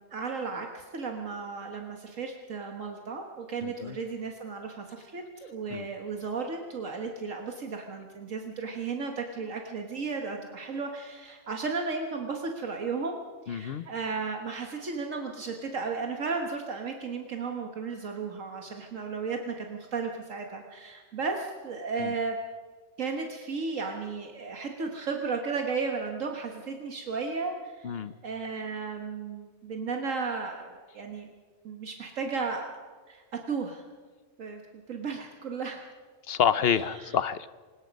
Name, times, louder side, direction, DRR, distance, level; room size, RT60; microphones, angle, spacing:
voice 1, 0.0-22.4 23.0-31.3 31.6-32.8 33.1-33.8 34.4-34.6 34.9-35.8 36.7-37.2, right 4 dB, 75° right, 3 dB, 1.8 m, -34 dB
voice 2, 3.6-4.0 5.7-5.9 13.5-13.8 22.0-22.1 27.8-28.1 36.3-37.5, left 8 dB, 55° left, 15 dB, 0.9 m, -28 dB
24.5 x 20.5 x 5.3 m, 1.5 s
omnidirectional pair, 1.4 m